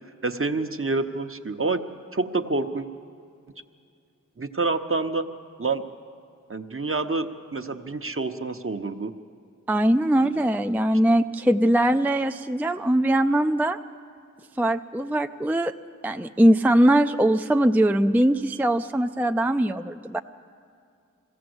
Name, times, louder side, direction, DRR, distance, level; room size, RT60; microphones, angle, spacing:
voice 1, 0.2-1.8 2.1-2.9 4.4-5.3 5.6-5.8 6.5-9.1 10.2-10.4, right 3 dB, 45° right, 8 dB, 1.0 m, -27 dB
voice 2, 9.7-13.8 14.6-15.7 16.0-20.2, right 1 dB, 5° right, 7 dB, 0.4 m, -21 dB
22.0 x 15.5 x 7.9 m, 2.4 s
wide cardioid pair, 55°, 31 cm